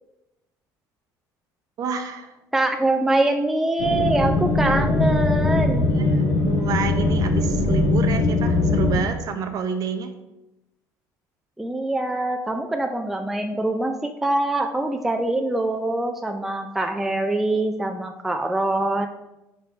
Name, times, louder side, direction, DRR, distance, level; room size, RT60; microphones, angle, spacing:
voice 1, 1.8-2.3 5.9-10.1, right 6 dB, 50° right, 7 dB, 0.8 m, -29 dB
voice 2, 2.5-5.9 11.6-19.1, right 2 dB, 5° right, 5 dB, 0.4 m, -24 dB
sound 1, 3.8-9.0, left 2 dB, 75° left, 1.3 m, -21 dB
4.9 x 4.6 x 4.5 m, 0.95 s
cardioid pair, 115°, 8 cm